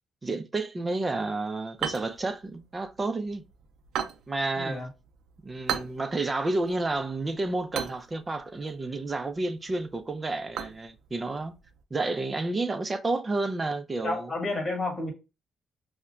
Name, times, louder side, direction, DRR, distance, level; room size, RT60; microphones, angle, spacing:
voice 1, 0.2-3.4 4.3-4.9 5.4-11.5 11.9-14.3, right 2 dB, 25° right, 0.5 m, -30 dB
sound 1, 1.7-11.8, right 8 dB, 80° right, 0.4 m, -39 dB
voice 2, 4.6-4.9 14.0-15.1, left 2 dB, 30° left, 1.8 m, -30 dB
5.5 x 2.1 x 2.4 m
cardioid pair, 90°, 0 cm